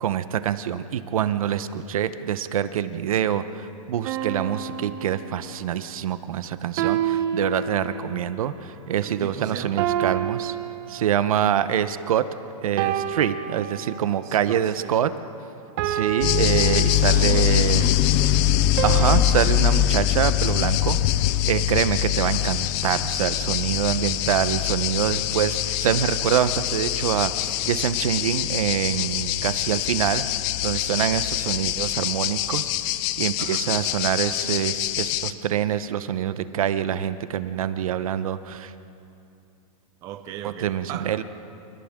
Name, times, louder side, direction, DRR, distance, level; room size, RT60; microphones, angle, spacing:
voice 1, 0.0-10.6 10.9-12.2 12.6-15.1 15.8-17.9 18.8-21.2 21.5-32.7 33.2-38.7 40.4-41.2, right 10 dB, 65° right, 12 dB, 1.0 m, -25 dB
sound 1, 4.0-5.7 6.8-8.3 9.8-11.4 12.8-14.3 15.8-17.5 18.8-19.8, right 10 dB, 35° right, 1.1 m, -29 dB
voice 2, 9.1-9.8 14.2-15.0 16.7-18.5 33.4-33.7 40.0-41.1, right 10 dB, 20° right, 8 dB, 0.6 m, -38 dB
sound 2, 16.2-35.3, left 13 dB, 20° left, 0.4 m, -23 dB
29.0 x 28.5 x 3.8 m, 2.7 s
supercardioid pair, 170°, 19 cm